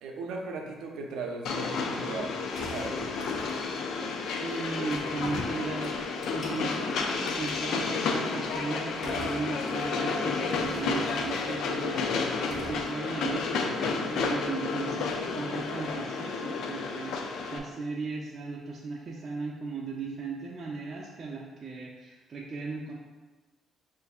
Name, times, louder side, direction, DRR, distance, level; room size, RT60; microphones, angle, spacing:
voice 1, 0.0-2.4 2.7-3.0, right 3 dB, 90° right, 0 dB, 0.5 m, -37 dB
Train, 1.5-17.6, left 4 dB, 80° left, 0.4 m, -31 dB
sound 1, 2.5-3.7 4.5-4.6 4.9-6.7 7.3-7.6 9.0-9.9 10.3-11.6 12.3-12.9, left 1 dB, 55° left, 1.0 m, -42 dB
voice 2, 4.2-22.9, right 4 dB, 45° right, -3 dB, 0.5 m, -37 dB
6.3 x 2.5 x 2.4 m, 1.3 s
cardioid pair, 90°, 0 cm